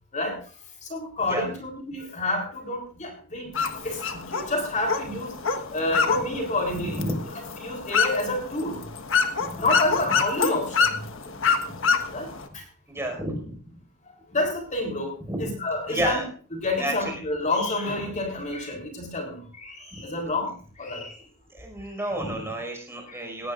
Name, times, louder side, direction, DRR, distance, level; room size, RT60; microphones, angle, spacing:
voice 1, 0.9-3.5 3.8-5.4 5.7-7.0 7.6-8.8 9.6-11.0 12.1-12.3 12.5-12.6 14.1-16.2 16.5-20.5 20.8-21.1 23.1-23.2, left 2 dB, 35° left, 3 dB, 3.7 m, -28 dB
sound 1, 3.5-12.5, left 5 dB, 65° left, 1.5 m, -27 dB
voice 2, 6.8-7.2 9.4-9.6 11.8-11.9 12.9-13.6 15.2-15.5 15.9-16.3 16.8-17.2 19.9-20.0 21.5-23.5, right 1 dB, 10° right, 2 dB, 5.5 m, -31 dB
18.0 x 17.5 x 2.6 m, 0.41 s
head